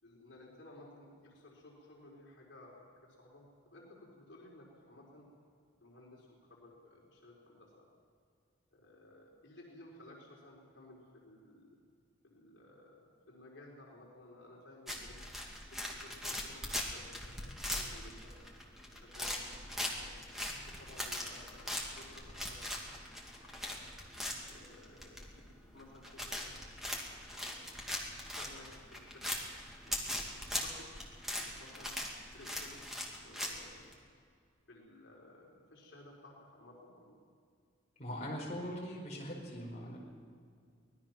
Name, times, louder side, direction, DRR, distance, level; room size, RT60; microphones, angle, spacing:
voice 1, 0.0-5.3 5.8-7.9 8.7-11.8 12.2-15.2 15.9-18.4 18.9-20.1 20.5-22.6 22.9-23.0 23.4-23.8 24.5-25.3 25.7-26.5 27.2-27.6 28.0-29.2 30.0-31.0 31.4-31.9 32.3-32.9 33.2-33.8 34.7-37.2, left 2 dB, 65° left, -3 dB, 4.4 m, -56 dB
sound 1, 14.9-33.9, left 1 dB, ahead, 2.4 m, -41 dB
voice 2, 38.0-40.0, equal, 35° left, -3 dB, 5.0 m, -41 dB
25.0 x 19.0 x 6.0 m, 2.2 s
head